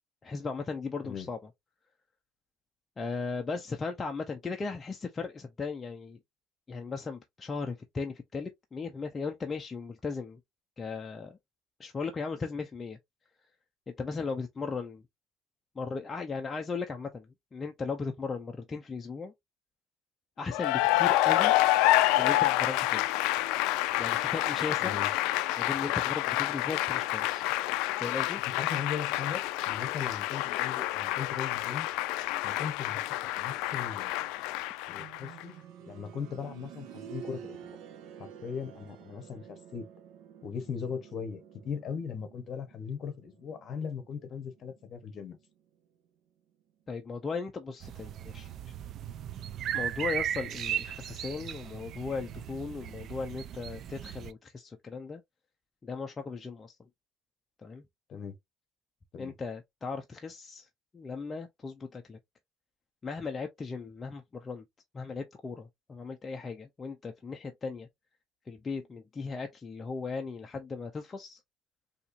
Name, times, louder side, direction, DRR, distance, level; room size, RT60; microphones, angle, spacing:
voice 1, 0.2-1.4 3.0-6.2 6.7-10.4 10.8-11.4 11.8-13.0 14.0-15.0 15.8-19.3 20.4-21.5 22.1-23.2 24.0-25.0 25.6-27.4 28.0-28.4 46.9-48.7 49.7-55.2 55.8-56.8 57.6-57.8 59.2-60.7 60.9-62.2 63.0-64.6 64.9-67.9 68.5-71.4, left 4 dB, 20° left, 0.5 m, -37 dB
Cheering / Applause, 20.5-35.4, left 16 dB, 85° left, 0.3 m, -28 dB
voice 2, 28.5-31.9 32.4-33.1 33.4-34.2 34.9-35.5 35.9-37.8 38.2-39.9 40.4-45.4 58.1-58.4 59.1-59.3, left 6 dB, 40° left, 0.9 m, -38 dB
sound 1, 35.0-45.8 47.1-47.2, right 9 dB, 80° right, 0.9 m, -50 dB
sound 2, 47.8-54.3, right 10 dB, 45° right, 0.4 m, -37 dB
4.3 x 2.8 x 2.5 m
cardioid pair, 150°, 0 cm